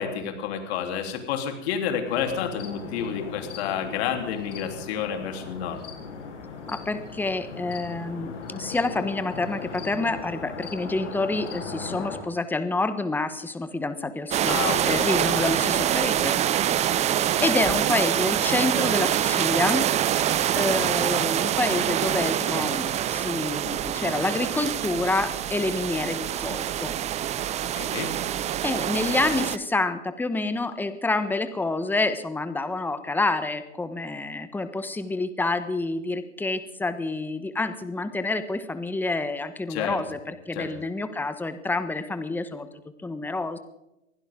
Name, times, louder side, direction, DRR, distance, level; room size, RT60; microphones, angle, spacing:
voice 1, 0.0-5.8 14.5-15.1 15.4-15.5 27.7-28.1 39.7-40.0 40.5-40.7, left 8 dB, 60° left, 4 dB, 3.7 m, -30 dB
sound 1, 2.0-12.2, left 5 dB, 75° left, 6.3 m, -38 dB
voice 2, 6.7-16.3 16.9-19.9 20.5-26.9 28.6-42.7 43.0-43.6, left 2 dB, 5° left, 11 dB, 1.2 m, -28 dB
sound 2, 14.3-29.6, right 11 dB, 20° right, 0.6 m, -25 dB
23.5 x 16.0 x 3.8 m, 0.88 s
hypercardioid pair, 120°, 37 cm